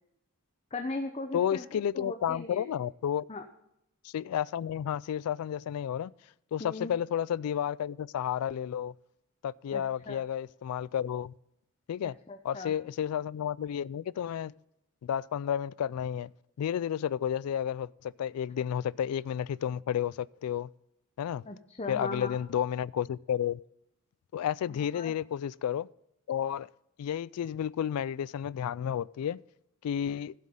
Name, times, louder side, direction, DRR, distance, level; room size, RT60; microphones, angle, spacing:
voice 1, 0.7-2.6 3.3-3.4 6.6-6.9 9.7-10.2 12.3-12.7 21.5-22.4 24.7-25.1, left 2 dB, 30° left, 0.7 m, -38 dB
voice 2, 1.3-3.3 4.0-6.1 6.5-8.9 9.4-11.3 11.9-12.2 12.4-14.5 15.0-16.3 16.6-20.7 21.2-21.4 21.9-23.6 24.3-25.9 26.3-26.7 27.0-29.4 29.8-30.3, left 9 dB, 85° left, 0.3 m, -31 dB
16.0 x 7.3 x 3.7 m
head